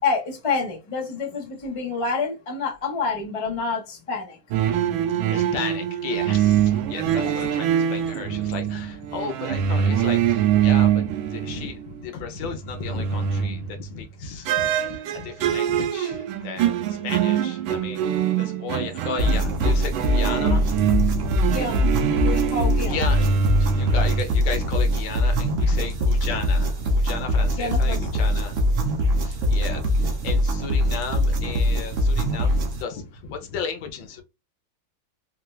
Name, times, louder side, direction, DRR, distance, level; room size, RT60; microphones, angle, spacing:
voice 1, 0.0-4.4 7.2-7.3 21.5-21.9 22.2-23.0 27.5-28.2, left 4 dB, 30° left, 0.6 m, -28 dB
sound 1, 4.5-12.0 12.4-13.9 14.5-24.2, right 9 dB, 85° right, 1.3 m, -24 dB
voice 2, 5.3-18.0 18.4-21.0 22.2-22.5 22.8-28.6 29.2-34.2, left 5 dB, 75° left, 1.3 m, -34 dB
sound 2, 19.2-32.8, equal, 60° right, 0.8 m, -22 dB
4.3 x 2.2 x 2.2 m
omnidirectional pair, 2.1 m